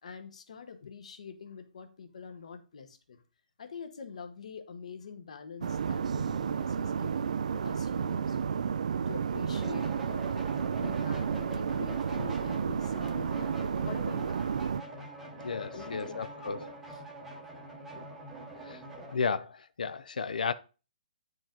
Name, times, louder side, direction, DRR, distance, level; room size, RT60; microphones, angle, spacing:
voice 1, 0.0-3.2 3.6-8.6 9.1-10.2 10.8-14.7 15.7-16.2 16.9-17.0, left 6 dB, 50° left, 1.1 m, -45 dB
sound 1, 5.6-14.8, right 6 dB, 55° right, 0.4 m, -31 dB
sound 2, 9.5-19.2, right 2 dB, 5° right, 0.9 m, -44 dB
voice 2, 15.4-16.7 18.7-18.8 19.1-20.5, left 5 dB, 70° left, 0.5 m, -33 dB
8.8 x 4.9 x 3.8 m
hypercardioid pair, 175°, 5 cm